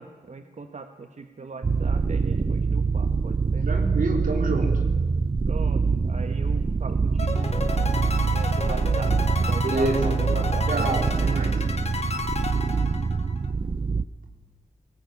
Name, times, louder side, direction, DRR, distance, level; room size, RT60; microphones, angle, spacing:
voice 1, 0.0-3.7 5.5-7.5 8.3-9.2 9.4-10.9, right 4 dB, 55° right, 8 dB, 1.2 m, -39 dB
sound 1, 1.6-14.0, right 4 dB, 40° right, 0.6 m, -24 dB
voice 2, 3.6-4.9 9.6-10.2 10.7-11.7, right 2 dB, 80° right, 3 dB, 3.8 m, -27 dB
sound 2, 7.2-13.5, left 3 dB, 50° left, 2.3 m, -33 dB
18.5 x 18.5 x 9.6 m, 1.4 s
cardioid pair, 60°, 14 cm